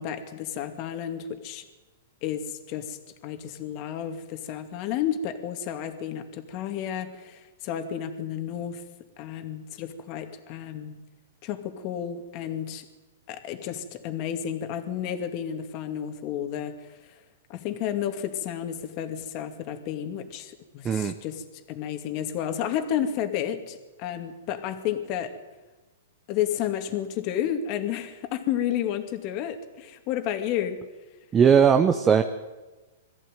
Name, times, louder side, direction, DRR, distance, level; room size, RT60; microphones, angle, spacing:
voice 1, 0.0-1.6 2.2-8.8 9.2-11.0 11.4-12.8 13.3-17.0 17.5-25.4 26.3-30.8, left 10 dB, 40° left, 7 dB, 2.4 m, -31 dB
voice 2, 31.3-32.2, right 7 dB, 20° right, 7 dB, 1.0 m, -18 dB
22.0 x 14.5 x 9.3 m, 1.2 s
hypercardioid pair, 140°, 0 cm